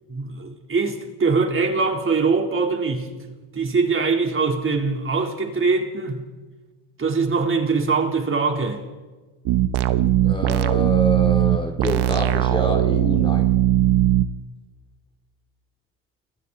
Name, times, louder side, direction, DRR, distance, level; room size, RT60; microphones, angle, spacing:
voice 1, 0.1-3.1 3.5-6.3 7.0-8.8, right 4 dB, 30° right, 3.8 m, -22 dB
sound 1, 9.4-14.3, right 13 dB, 60° right, 1.2 m, -19 dB
voice 2, 10.2-13.5, equal, 10° left, 2.7 m, -27 dB
29.0 x 22.5 x 4.2 m
supercardioid pair, 90°, 44 cm